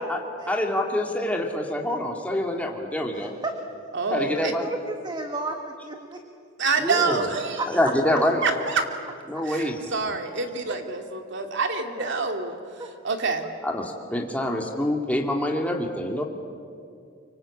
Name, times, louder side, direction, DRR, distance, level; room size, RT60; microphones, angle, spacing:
voice 1, 0.5-3.3 4.1-4.7 6.8-7.2 7.7-8.4 9.3-9.8 13.6-16.2, left 1 dB, 5° left, 0 dB, 2.4 m, -26 dB
voice 2, 3.1-3.5 4.6-6.2 7.6-7.7 12.0-12.1 12.8-12.9, right 2 dB, 20° right, 5 dB, 1.5 m, -33 dB
voice 3, 3.9-4.5 6.6-7.6 8.4-8.8 9.4-13.5, right 4 dB, 60° right, 5 dB, 2.5 m, -27 dB
25.5 x 24.5 x 8.5 m, 2.3 s
head